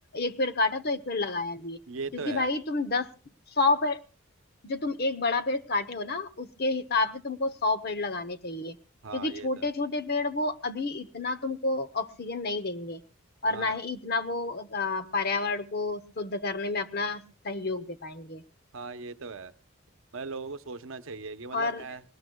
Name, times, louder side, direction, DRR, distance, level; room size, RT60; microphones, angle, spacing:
voice 1, 0.1-1.8 2.1-3.1 3.5-4.0 4.6-8.8 9.1-13.0 13.4-18.4 21.5-21.8, left 3 dB, 45° left, 11 dB, 0.8 m, -29 dB
voice 2, 1.9-2.5 9.0-9.7 13.5-13.8 18.7-19.5 20.1-22.0, right 4 dB, 70° right, 11 dB, 0.8 m, -38 dB
21.0 x 19.0 x 2.3 m, 0.31 s
head